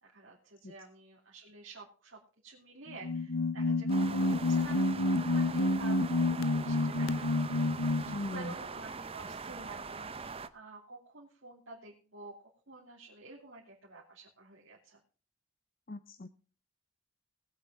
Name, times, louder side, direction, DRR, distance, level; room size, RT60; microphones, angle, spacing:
voice 1, 0.0-12.3 12.7-15.0, right 3 dB, 65° right, -4 dB, 3.0 m, -50 dB
sound 1, 2.9-8.2, left 2 dB, 80° left, 0.9 m, -29 dB
sound 2, 3.9-10.5, right 4 dB, 30° right, 0.7 m, -42 dB
voice 2, 8.1-8.5 15.9-16.3, left 2 dB, 45° left, 13 dB, 0.7 m, -40 dB
19.5 x 8.3 x 3.7 m, 0.38 s
head